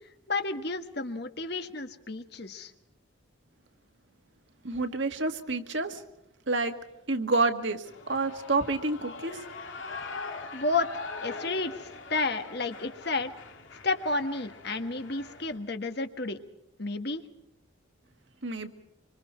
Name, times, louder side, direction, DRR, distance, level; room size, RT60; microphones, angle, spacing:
voice 1, 0.3-2.7 10.5-13.3 13.8-16.4 16.8-17.2, left 3 dB, 55° left, 8 dB, 1.5 m, -31 dB
voice 2, 4.6-6.0 6.5-6.7 7.1-9.4 18.4-18.7, right 3 dB, 65° right, 6 dB, 1.9 m, -28 dB
Shout / Cheering, 7.8-15.6, left 3 dB, 70° left, 3.0 m, -42 dB
26.0 x 25.5 x 4.5 m, 0.87 s
head